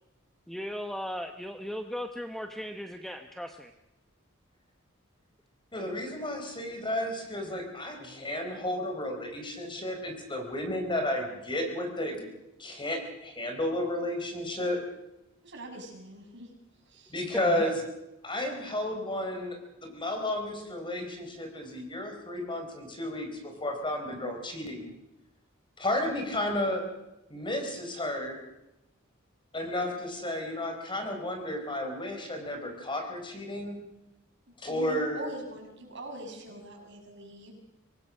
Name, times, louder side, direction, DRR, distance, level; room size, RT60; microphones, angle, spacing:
voice 1, 0.5-3.7 8.0-8.3 17.2-17.7, equal, ahead, 6 dB, 1.0 m, -37 dB
voice 2, 5.7-12.3 12.6-14.8 17.1-17.8 18.2-24.9 25.8-26.8 27.3-28.4 29.5-33.8 34.6-35.3, left 1 dB, 25° left, 4 dB, 4.6 m, -32 dB
voice 3, 15.4-16.5 16.8-17.1 34.7-37.5, right 1 dB, 60° right, 1 dB, 6.5 m, -43 dB
25.0 x 19.0 x 6.5 m, 0.93 s
head